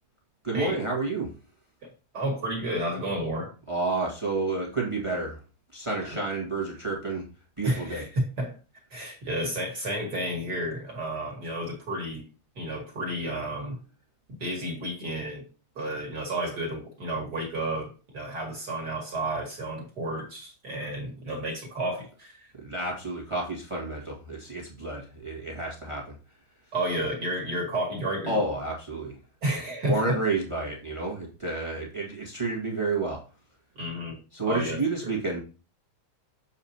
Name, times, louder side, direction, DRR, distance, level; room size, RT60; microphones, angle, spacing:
voice 1, 0.4-1.3 3.7-5.4 5.7-7.3 7.6-8.1 22.6-26.1 28.3-29.2 29.9-33.2 34.3-35.4, right 3 dB, 25° right, -1 dB, 0.7 m, -30 dB
voice 2, 2.1-3.5 7.6-8.5 8.9-12.3 12.6-13.8 14.4-15.4 15.8-22.5 26.7-28.4 29.4-30.2 33.8-34.2 34.5-34.8 35.0-35.1, right 1 dB, 40° right, 0 dB, 1.8 m, -31 dB
7.1 x 7.0 x 2.8 m, 0.33 s
omnidirectional pair, 3.6 m